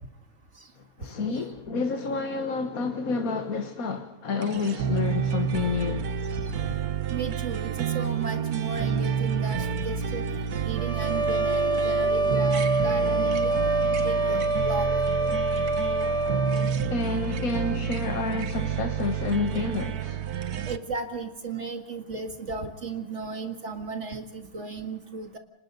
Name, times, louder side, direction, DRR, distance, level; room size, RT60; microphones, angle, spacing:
voice 1, 1.0-6.1 16.9-20.2, left 4 dB, 65° left, 1.8 m, -29 dB
sound 1, 4.4-20.8, right 7 dB, 75° right, 1.5 m, -29 dB
voice 2, 6.3-6.8 7.1-13.6 14.0-14.9 20.6-25.4, right 4 dB, 50° right, 2.2 m, -35 dB
sound 2, 10.8-16.8, right 2 dB, 5° left, 0.8 m, -26 dB
30.0 x 26.0 x 4.0 m
omnidirectional pair, 1.6 m